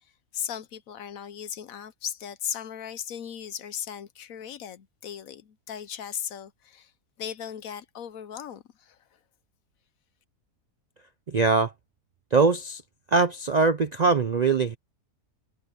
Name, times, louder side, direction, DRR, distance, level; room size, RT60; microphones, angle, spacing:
voice 1, 0.3-6.9 7.2-9.0, left 9 dB, 65° left, 1.1 m, -37 dB
voice 2, 11.3-11.7 12.3-12.8 13.1-14.8, right 4 dB, 80° right, 0.3 m, -22 dB
omnidirectional pair, 1.6 m